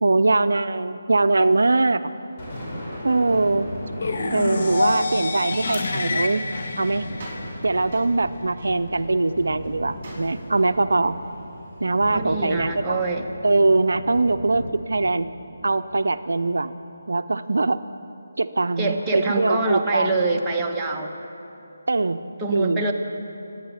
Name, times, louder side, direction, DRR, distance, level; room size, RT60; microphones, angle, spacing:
voice 1, 0.0-2.1 3.0-3.7 4.3-6.4 6.8-7.0 7.6-11.2 11.8-13.0 13.4-15.3 15.6-16.7 17.1-17.8 18.4-20.1 21.9-22.2 22.5-22.9, right 3 dB, 75° right, 11 dB, 0.5 m, -22 dB
Thunder, 2.0-16.6, equal, 20° left, 4.6 m, -38 dB
sound 1, 4.0-8.0, left 3 dB, 50° left, 1.4 m, -27 dB
sound 2, 5.7-10.6, right 2 dB, 35° right, 4.7 m, -44 dB
voice 2, 12.1-13.3 18.8-21.1 22.4-22.9, right 3 dB, 10° right, -2 dB, 1.1 m, -25 dB
26.5 x 9.0 x 5.7 m, 2.9 s
figure-of-eight pair, 160°, 0 cm